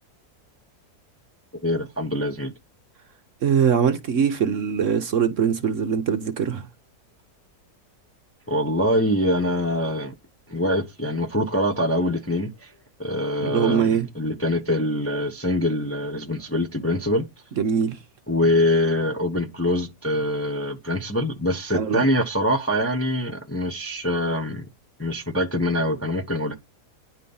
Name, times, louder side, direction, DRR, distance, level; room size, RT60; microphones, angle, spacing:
voice 1, 1.6-2.5 8.5-10.2 10.5-12.7 13.0-17.3 18.3-24.6 25.0-26.5, left 1 dB, 10° left, 0.8 m, -24 dB
voice 2, 3.4-6.7 13.4-14.1 17.6-18.0 21.7-22.0, right 7 dB, 55° right, 1.0 m, -22 dB
10.0 x 4.1 x 5.5 m
omnidirectional pair, 1.7 m